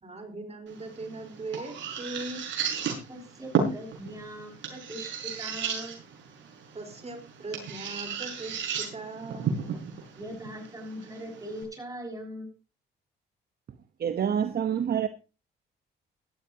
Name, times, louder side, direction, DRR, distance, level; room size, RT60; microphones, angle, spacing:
voice 1, 0.0-2.4 6.7-9.5, right 2 dB, 30° right, 4.2 m, -39 dB
sound 1, 0.7-11.6, right 6 dB, 70° right, 6.2 m, -34 dB
voice 2, 3.1-5.9 10.2-12.5, equal, 15° right, 6.5 m, -40 dB
voice 3, 14.0-15.1, right 8 dB, 50° right, 1.1 m, -27 dB
17.0 x 12.0 x 2.9 m
cardioid pair, 90°, 20 cm